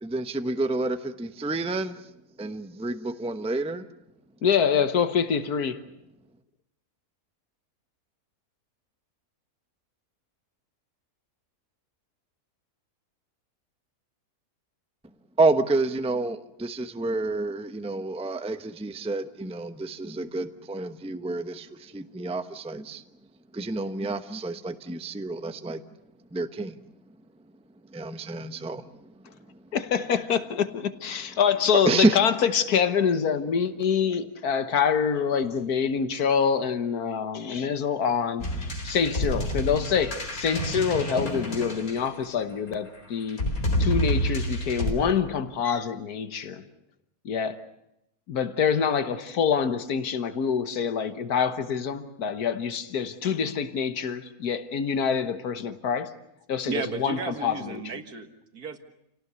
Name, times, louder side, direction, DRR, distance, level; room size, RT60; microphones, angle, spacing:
voice 1, 0.0-2.0 2.4-3.8 15.4-23.0 23.5-25.8 26.3-26.7 27.9-28.8 31.9-32.2, right 2 dB, 5° right, 0.8 m, -28 dB
voice 2, 4.4-5.8 29.7-43.5 43.8-46.6 47.3-47.6 48.3-56.1 56.5-57.8, left 7 dB, 90° left, 1.7 m, -26 dB
sound 1, 38.4-42.5 43.3-44.9, equal, 70° left, 4.8 m, -28 dB
voice 3, 56.6-58.8, right 5 dB, 90° right, 2.2 m, -34 dB
29.0 x 18.0 x 8.1 m
omnidirectional pair, 1.6 m